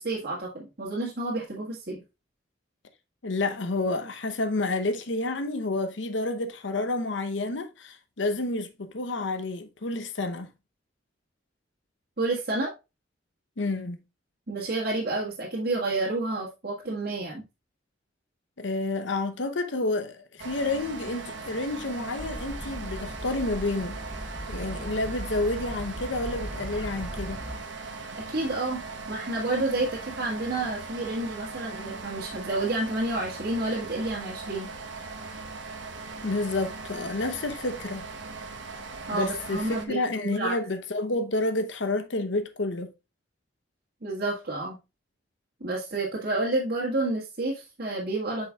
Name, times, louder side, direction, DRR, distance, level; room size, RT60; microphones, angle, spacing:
voice 1, 0.0-2.0 12.2-12.7 14.5-17.4 28.3-28.8 29.1-34.7 39.1-40.5 44.0-44.8 45.6-48.5, right 2 dB, 55° right, 1.7 m, -30 dB
voice 2, 3.2-10.5 13.6-14.0 18.6-24.0 24.5-27.4 36.2-38.1 39.1-42.9, left 2 dB, 75° left, 0.8 m, -29 dB
sound 1, 20.4-39.9, right 4 dB, 75° right, 1.1 m, -39 dB
sound 2, 22.2-27.6, right 1 dB, 5° right, 0.3 m, -38 dB
8.2 x 5.5 x 2.3 m
head